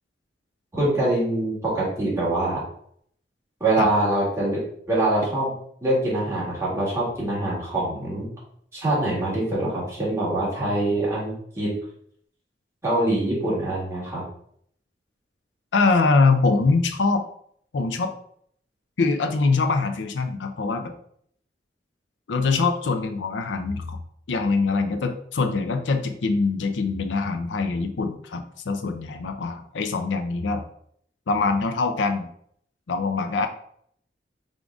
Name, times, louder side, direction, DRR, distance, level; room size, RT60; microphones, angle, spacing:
voice 1, 0.7-2.6 3.6-4.6 4.9-5.5 5.8-8.3 8.7-11.7 12.8-14.2, right 1 dB, 15° right, -7 dB, 1.9 m, -24 dB
voice 2, 15.7-17.2 17.7-18.1 19.0-20.9 22.3-24.0 24.3-30.6 31.3-32.3 32.9-33.5, left 4 dB, 85° left, 7 dB, 0.5 m, -23 dB
3.8 x 3.6 x 3.5 m, 0.65 s
head